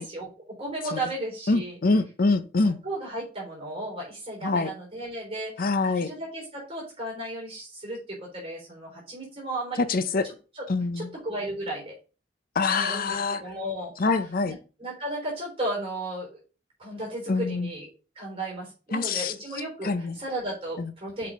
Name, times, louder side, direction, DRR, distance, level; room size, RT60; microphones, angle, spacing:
voice 1, 0.0-1.8 2.6-9.8 10.5-10.7 11.0-11.9 12.8-14.1 14.4-14.5 14.8-16.4 16.8-17.9 18.2-21.3, right 1 dB, 30° right, 3.8 m, -35 dB
voice 2, 1.5-2.8 4.4-4.7 5.6-6.1 9.8-10.3 10.7-11.1 12.5-13.4 14.0-14.6 17.3-17.7 18.9-19.3 19.8-20.2 20.8-20.9, left 3 dB, 55° left, 0.7 m, -25 dB
7.6 x 5.6 x 4.1 m
head